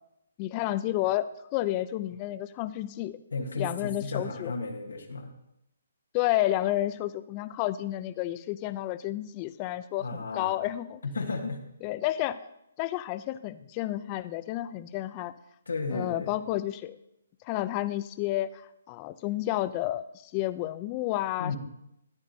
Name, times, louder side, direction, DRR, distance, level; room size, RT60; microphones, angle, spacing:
voice 1, 0.4-3.2 3.6-4.5 6.1-11.0 11.8-12.5 12.8-15.3 15.9-17.0 17.4-21.6, left 15 dB, 25° left, 14 dB, 0.4 m, -31 dB
voice 2, 3.3-5.3 10.0-10.6 11.0-11.6 15.7-16.3 21.4-21.6, left 3 dB, 90° left, 2 dB, 1.3 m, -34 dB
13.0 x 9.8 x 2.7 m, 0.83 s
hypercardioid pair, 155°, 0 cm